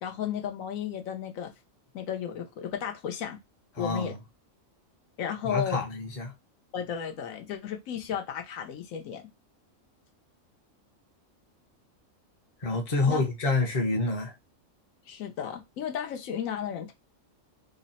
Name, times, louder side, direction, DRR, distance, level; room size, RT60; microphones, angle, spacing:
voice 1, 0.0-1.5 1.9-3.4 3.8-4.1 5.2-5.8 6.7-9.2 13.1-13.2 15.1-16.9, left 8 dB, 80° left, 1.1 m, -34 dB
voice 2, 3.7-4.2 5.4-6.3 12.6-14.3, left 3 dB, 35° left, 0.7 m, -28 dB
3.1 x 2.1 x 4.0 m
omnidirectional pair, 1.4 m